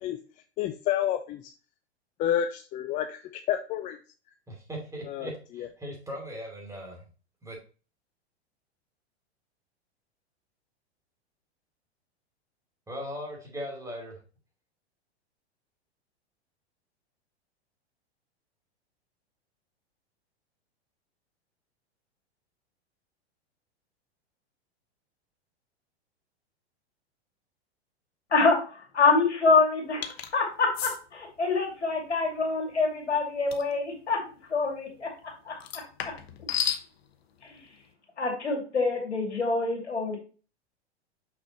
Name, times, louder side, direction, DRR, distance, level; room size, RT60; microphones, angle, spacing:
voice 1, 0.6-1.4 2.2-3.2 3.5-4.0 5.1-5.3 5.6-5.7, left 10 dB, 25° left, 7 dB, 0.4 m, -29 dB
voice 2, 4.5-7.0 7.4-7.6 12.9-14.2, equal, 10° right, -1 dB, 2.8 m, -39 dB
voice 3, 28.9-34.2 34.5-36.1 37.4-37.6 38.2-40.2, left 4 dB, 80° left, 1 dB, 2.6 m, -26 dB
sound 1, 30.0-30.3 30.7-31.0 33.5-33.7 35.6-36.8, left 9 dB, 65° left, 1.0 m, -32 dB
6.2 x 5.9 x 3.0 m, 0.36 s
figure-of-eight pair, 95°, 33 cm